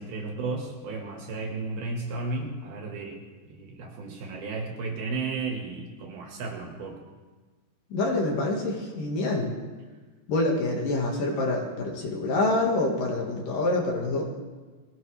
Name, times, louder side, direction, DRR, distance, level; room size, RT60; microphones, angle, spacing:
voice 1, 0.0-3.2 3.5-7.0, right 3 dB, 65° right, 1 dB, 3.5 m, -33 dB
voice 2, 7.9-9.5 10.3-14.2, left 2 dB, 55° left, -1 dB, 3.1 m, -26 dB
21.0 x 16.5 x 3.4 m, 1.4 s
omnidirectional pair, 5.1 m